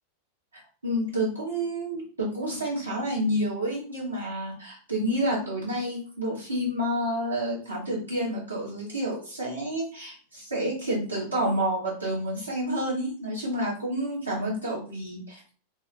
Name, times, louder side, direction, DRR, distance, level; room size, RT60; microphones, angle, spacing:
voice 1, 0.8-15.5, equal, 80° right, -6 dB, 1.3 m, -29 dB
3.0 x 2.1 x 3.1 m, 0.41 s
figure-of-eight pair, 90°, 0 cm